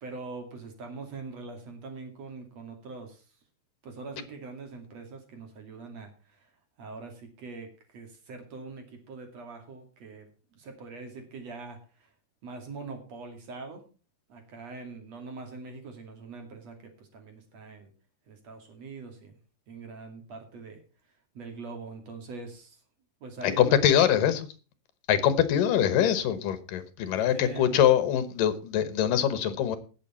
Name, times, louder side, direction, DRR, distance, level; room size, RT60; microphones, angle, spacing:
voice 1, 0.0-3.2 3.8-6.5 6.8-10.3 10.5-12.1 12.4-13.8 14.3-17.9 18.3-19.4 19.7-20.8 21.4-22.8 23.2-23.9 27.1-27.8, right 4 dB, 50° right, 4 dB, 3.4 m, -43 dB
voice 2, 23.4-24.4 25.1-29.8, left 10 dB, 75° left, 12 dB, 2.7 m, -23 dB
18.5 x 6.9 x 4.3 m, 0.36 s
omnidirectional pair, 4.0 m